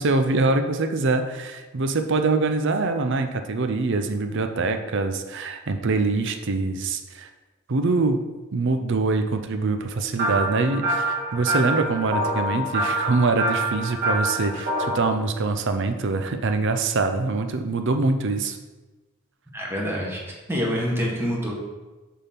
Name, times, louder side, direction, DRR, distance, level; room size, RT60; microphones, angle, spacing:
voice 1, 0.0-7.3 7.7-8.2 8.5-18.6, right 3 dB, 65° right, 7 dB, 0.6 m, -24 dB
sound 1, 10.2-15.0, right 1 dB, 45° right, 1.9 m, -26 dB
voice 2, 19.5-21.5, equal, 10° right, -3 dB, 1.5 m, -26 dB
7.0 x 3.7 x 5.8 m, 1.2 s
head